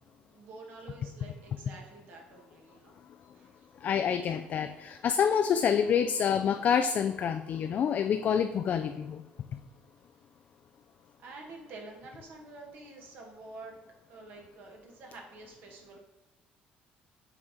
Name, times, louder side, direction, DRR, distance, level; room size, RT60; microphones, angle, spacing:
voice 1, 0.0-4.0 11.2-13.8 14.1-16.0, right 3 dB, 65° right, 1 dB, 1.8 m, -49 dB
voice 2, 3.8-9.2, left 7 dB, 50° left, 7 dB, 0.4 m, -27 dB
7.3 x 4.1 x 4.9 m, 1.1 s
cardioid pair, 105°, 4 cm